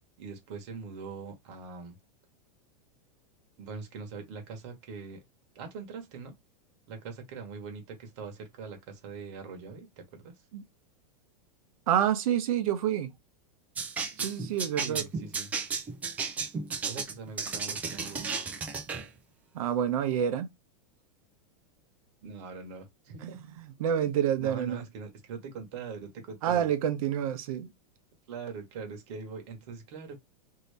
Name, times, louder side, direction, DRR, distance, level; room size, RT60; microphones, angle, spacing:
voice 1, 0.2-2.0 3.6-5.2 5.5-6.3 6.9-10.3 14.8-15.5 16.9-18.3 22.2-23.4 24.4-26.7 28.3-30.2, right 5 dB, 45° right, 1.1 m, -42 dB
voice 2, 11.9-13.2 14.2-15.1 19.5-20.5 23.2-24.8 26.4-27.7, right 9 dB, 60° right, 0.7 m, -28 dB
sound 1, 13.8-19.1, right 5 dB, 10° right, 0.3 m, -33 dB
2.8 x 2.7 x 3.2 m
supercardioid pair, 170°, 20 cm